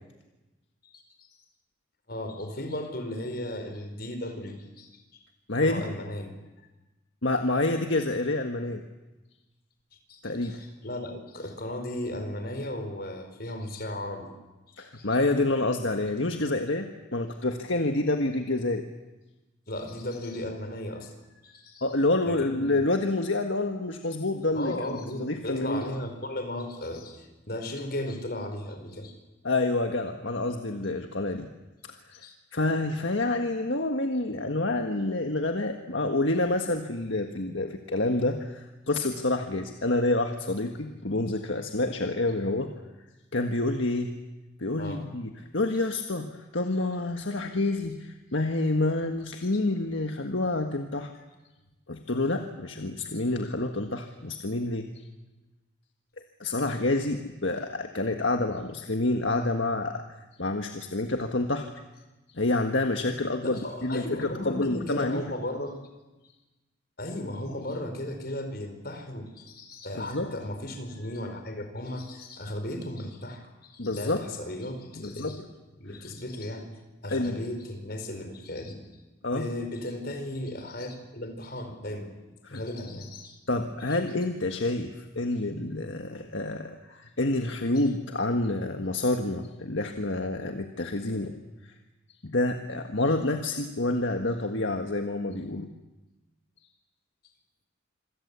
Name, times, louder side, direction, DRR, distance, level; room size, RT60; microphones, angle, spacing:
voice 1, 0.9-1.3 2.1-5.2 5.6-6.3 10.1-14.3 14.7-15.1 19.7-21.9 22.3-22.8 24.5-29.2 32.1-32.3 44.8-45.0 49.4-49.5 51.1-51.2 63.4-65.8 67.0-75.4 75.8-78.8 79.3-82.1 82.5-83.4 87.8-87.9, left 1 dB, 50° left, 6 dB, 4.7 m, -36 dB
voice 2, 5.5-5.9 7.2-8.8 10.2-10.6 14.8-18.8 21.8-24.7 25.2-25.9 29.4-31.5 31.8-32.3 32.5-42.7 43.3-44.1 44.6-51.1 51.9-54.9 56.4-61.7 62.3-65.2 69.9-70.3 73.8-74.2 75.0-75.4 77.1-77.4 79.2-79.5 82.4-82.6 83.5-91.4 91.6-91.7 92.2-95.7, left 2 dB, 70° left, 5 dB, 1.6 m, -28 dB
27.0 x 24.0 x 8.3 m, 1.1 s
head